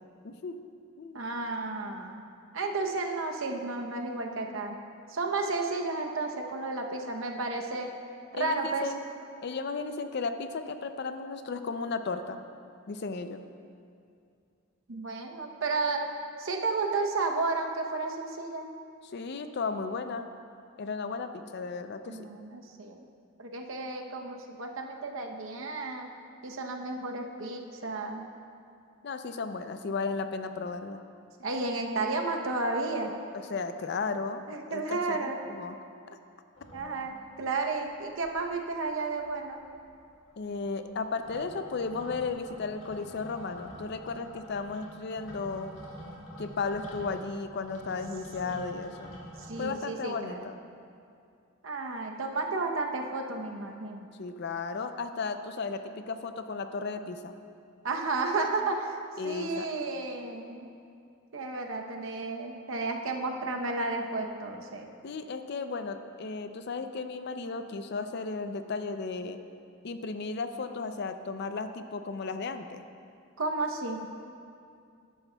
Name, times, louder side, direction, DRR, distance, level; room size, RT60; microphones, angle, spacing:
voice 1, 0.2-0.6 1.0-1.2 8.3-9.0 9.4-12.4 12.9-13.4 19.0-20.3 20.8-22.2 29.0-31.0 33.3-34.4 34.7-35.8 40.4-45.7 46.4-49.1 49.6-50.6 54.2-57.3 59.2-59.7 65.0-69.4 69.8-72.8, left 4 dB, 55° left, 9 dB, 0.4 m, -35 dB
voice 2, 1.1-2.2 2.5-4.8 5.1-8.0 8.3-8.9 14.9-16.0 16.4-18.6 22.1-23.0 23.4-26.1 26.4-28.3 31.4-33.2 34.5-35.4 36.7-39.6 48.5-48.7 49.5-50.4 51.6-54.1 57.8-59.0 59.2-60.7 61.3-64.9 73.4-74.1, right 3 dB, 75° right, 3 dB, 0.8 m, -32 dB
sound 1, 36.6-37.5 37.9-38.0 38.1-38.8 39.1-49.6, equal, 75° left, 1.6 m, -47 dB
13.0 x 10.0 x 2.3 m, 2.4 s
head